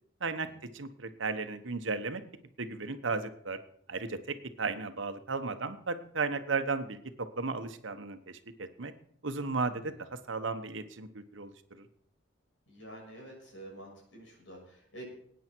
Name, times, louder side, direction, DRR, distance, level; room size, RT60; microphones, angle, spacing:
voice 1, 0.7-2.2 2.6-3.6 3.9-8.9 9.2-11.9, right 4 dB, 80° right, 10 dB, 1.1 m, -35 dB
voice 2, 9.7-10.0 12.7-15.1, right 1 dB, 75° left, -2 dB, 6.9 m, -48 dB
20.0 x 9.4 x 4.6 m, 0.66 s
head